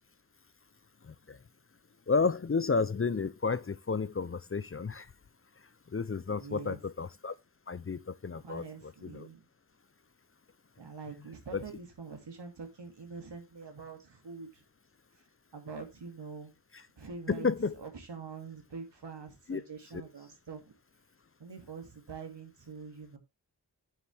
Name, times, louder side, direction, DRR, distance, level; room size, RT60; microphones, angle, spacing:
voice 1, 1.1-1.4 2.1-5.1 5.9-7.3 7.7-9.3 11.5-11.6 17.3-17.7 19.5-19.6 19.9-20.0, left 4 dB, 30° left, 0.5 m, -32 dB
voice 2, 6.3-6.8 8.3-9.5 10.8-14.6 15.5-16.5 17.0-17.5 17.8-20.7 21.4-23.2, right 5 dB, 75° right, 2.5 m, -45 dB
9.5 x 7.1 x 3.4 m
wide cardioid pair, 105°, 42 cm